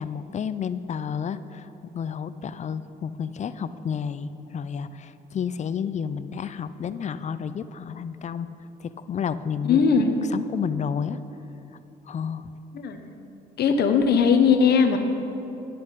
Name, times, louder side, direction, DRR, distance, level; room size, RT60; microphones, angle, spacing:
voice 1, 0.0-8.5 8.8-11.2 12.1-12.5, left 7 dB, 40° left, 14 dB, 0.4 m, -31 dB
voice 2, 9.7-10.2 12.7-13.0 13.6-15.0, left 6 dB, 65° left, 6 dB, 0.9 m, -19 dB
10.0 x 7.6 x 5.1 m, 2.9 s
supercardioid pair, 75°, 18 cm